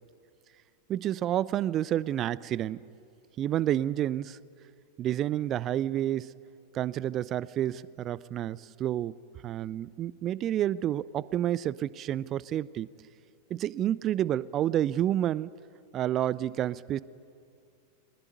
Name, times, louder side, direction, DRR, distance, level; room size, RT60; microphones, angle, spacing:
voice 1, 0.9-2.8 3.4-4.4 5.0-6.3 6.7-9.2 9.4-12.9 13.5-15.5 15.9-17.0, right 12 dB, 30° right, 21 dB, 0.5 m, -29 dB
21.5 x 21.0 x 9.3 m, 2.4 s
figure-of-eight pair, 90°, 0 cm